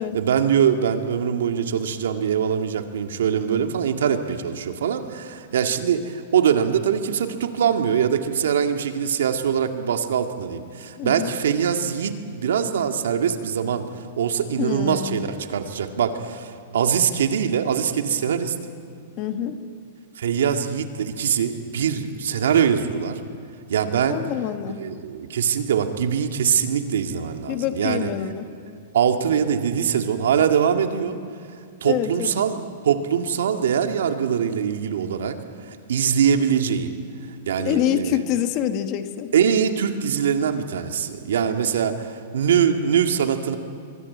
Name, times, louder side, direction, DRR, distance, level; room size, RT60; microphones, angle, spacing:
voice 1, 0.0-13.8 14.2-18.5 20.2-23.2 23.7-24.2 24.7-28.1 28.9-31.2 31.8-35.4 35.6-37.0 37.5-38.2 39.3-43.6, right 8 dB, 85° right, 6 dB, 2.1 m, -23 dB
voice 2, 11.0-11.3 14.6-15.2 19.2-19.6 24.1-24.8 27.5-28.5 31.8-32.4 37.6-39.3, left 11 dB, 30° left, 9 dB, 1.3 m, -26 dB
26.5 x 23.5 x 8.6 m, 2.3 s
supercardioid pair, 175°, 0 cm